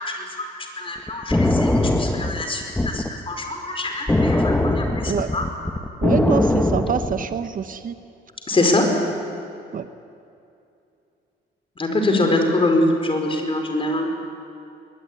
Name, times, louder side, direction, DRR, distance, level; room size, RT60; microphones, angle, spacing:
voice 1, 0.0-5.4 8.5-8.9 11.8-14.1, left 2 dB, 30° left, 4 dB, 5.0 m, -24 dB
sound 1, 1.1-3.1 4.1-7.4, left 1 dB, 10° left, 1.5 m, -20 dB
voice 2, 6.0-8.0 9.7-9.9, right 7 dB, 45° right, 11 dB, 1.0 m, -25 dB
23.0 x 20.0 x 9.9 m, 2.6 s
cardioid pair, 105°, 19 cm